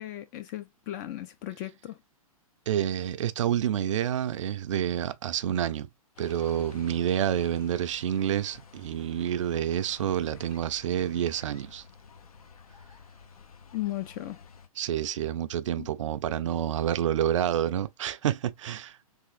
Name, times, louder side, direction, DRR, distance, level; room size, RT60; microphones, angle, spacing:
voice 1, 0.0-2.0 13.7-14.4 15.8-15.9, left 14 dB, 30° left, 0.3 m, -36 dB
voice 2, 2.7-5.9 6.2-11.8 14.8-19.0, right 10 dB, 55° right, 0.4 m, -28 dB
sound 1, 6.2-14.7, left 5 dB, 75° left, 0.7 m, -51 dB
3.5 x 3.0 x 2.5 m
figure-of-eight pair, 115°, 19 cm